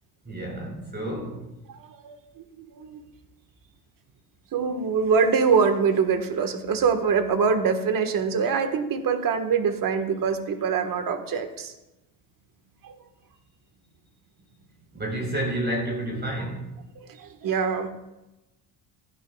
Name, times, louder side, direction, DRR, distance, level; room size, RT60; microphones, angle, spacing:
voice 1, 0.2-1.5 14.9-16.7, right 1 dB, 20° right, 4.3 m, -30 dB
voice 2, 1.7-3.0 4.5-11.7 12.8-12.9 17.1-17.9, right 5 dB, 45° right, 1.6 m, -24 dB
15.0 x 10.5 x 2.3 m
supercardioid pair, 85°, 45 cm